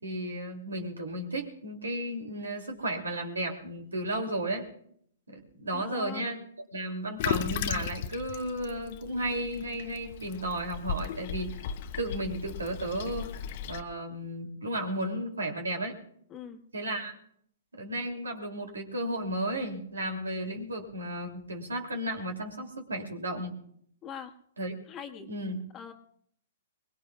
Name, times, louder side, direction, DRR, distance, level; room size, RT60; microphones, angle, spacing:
voice 1, 0.0-4.7 5.3-6.4 6.7-11.5 12.0-13.4 13.7-15.9 16.7-17.1 17.7-23.5 24.6-24.8 25.2-25.6, right 1 dB, 85° right, 3 dB, 2.7 m, -34 dB
voice 2, 5.7-6.5 16.3-16.6 24.0-24.4 24.9-25.3 25.7-25.9, left 8 dB, 25° left, 5 dB, 1.4 m, -42 dB
Toilet flush, 7.2-13.8, left 8 dB, 50° left, 0.7 m, -36 dB
22.5 x 20.5 x 2.3 m, 0.67 s
hypercardioid pair, 120°, 0 cm